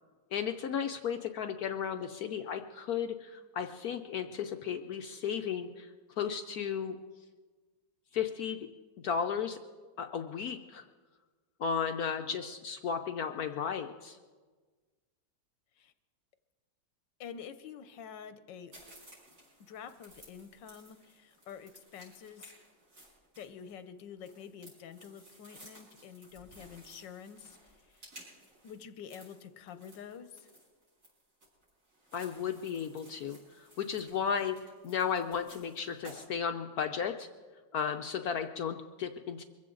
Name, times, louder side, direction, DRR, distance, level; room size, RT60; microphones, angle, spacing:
voice 1, 0.3-5.9 6.2-7.0 8.1-8.7 9.0-9.6 10.0-10.8 11.6-14.2 32.1-34.6 34.8-37.3 37.7-39.4, left 7 dB, 65° left, 7 dB, 1.0 m, -34 dB
voice 2, 17.2-18.8 19.7-22.5 23.4-27.6 27.9-28.0 28.6-30.5, left 7 dB, 90° left, 11 dB, 1.5 m, -48 dB
sound 1, 18.7-36.3, right 1 dB, 45° right, 5.9 m, -57 dB
23.0 x 15.0 x 3.9 m, 1.4 s
omnidirectional pair, 1.9 m